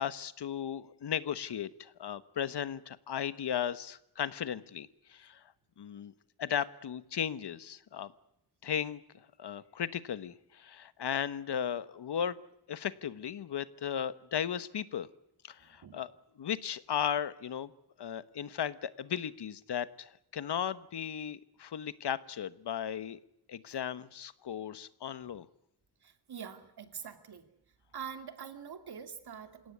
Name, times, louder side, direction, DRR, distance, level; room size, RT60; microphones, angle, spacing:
voice 1, 0.0-5.4 5.8-6.1 6.4-8.1 8.6-9.0 9.4-12.4 12.7-15.1 15.5-16.1 16.4-17.7 18.0-23.2 23.5-25.5, left 9 dB, 80° left, 14 dB, 1.2 m, -36 dB
voice 2, 15.6-16.0 26.0-27.5 27.9-29.7, right 7 dB, 70° right, 8 dB, 2.6 m, -45 dB
27.0 x 17.5 x 9.6 m, 0.81 s
wide cardioid pair, 130°, 40 cm